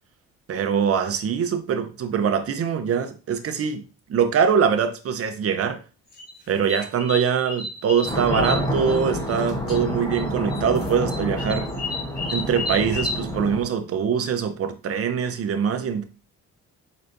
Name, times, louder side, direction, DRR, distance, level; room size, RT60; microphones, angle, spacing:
voice 1, 0.5-3.8 4.1-5.8 6.5-11.7 12.3-16.0, right 7 dB, 50° right, 0.8 m, -23 dB
sound 1, 6.1-9.4 9.7-10.2 10.5-13.2, left 3 dB, 30° left, 2.1 m, -32 dB
sound 2, 8.0-13.6, equal, 10° left, 1.2 m, -28 dB
4.5 x 4.1 x 2.6 m
cardioid pair, 90°, 30 cm